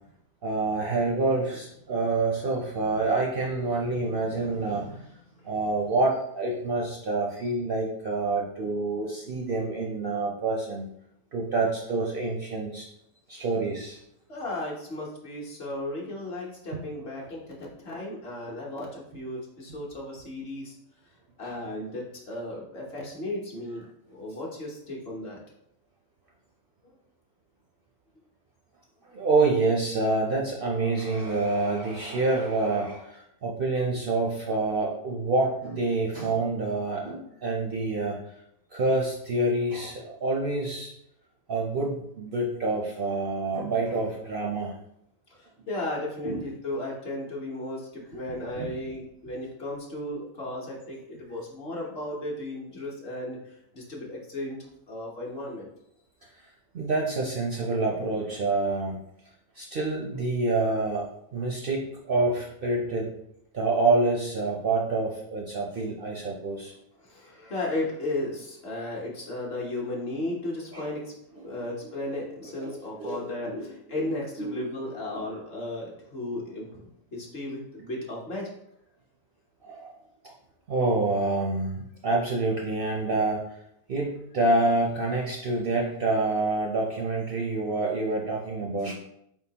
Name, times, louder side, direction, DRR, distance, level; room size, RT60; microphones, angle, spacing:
voice 1, 0.4-5.2 5.4-10.9 11.3-12.9 13.3-14.0 16.7-16.8 21.4-21.6 29.1-38.2 38.7-40.9 41.5-44.7 46.2-46.4 48.6-48.7 56.7-59.0 59.6-63.1 63.5-66.7 70.7-70.9 71.4-71.5 72.6-74.1 74.4-74.6 79.6-80.0 80.2-80.3 80.7-83.4 83.9-88.9, right 3 dB, 55° right, -2 dB, 0.7 m, -27 dB
voice 2, 14.3-20.7 21.4-25.4 26.8-26.9 45.4-54.6 54.9-55.7 67.0-71.1 71.4-78.5, left 1 dB, 50° left, -3 dB, 1.2 m, -35 dB
4.3 x 3.8 x 2.8 m, 0.76 s
omnidirectional pair, 1.4 m